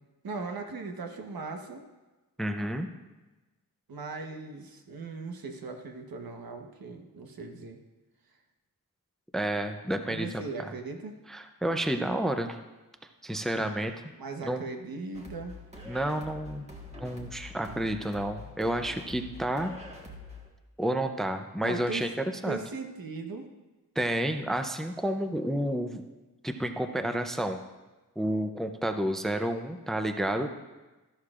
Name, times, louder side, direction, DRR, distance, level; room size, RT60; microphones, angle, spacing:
voice 1, 0.2-1.8 3.9-7.8 10.1-11.2 14.2-15.6 21.6-23.5, right 4 dB, 70° right, 4 dB, 1.2 m, -38 dB
voice 2, 2.4-2.9 9.3-10.7 11.3-12.6 13.2-13.9 14.4-14.6 15.9-16.7 17.0-19.8 20.8-22.1 22.4-22.6 24.0-26.0 26.4-27.6 28.2-30.5, right 1 dB, ahead, 7 dB, 0.5 m, -30 dB
sound 1, 15.1-20.5, left 2 dB, 15° right, 1.5 m, -45 dB
13.0 x 11.5 x 2.5 m, 1.1 s
wide cardioid pair, 135°, 38 cm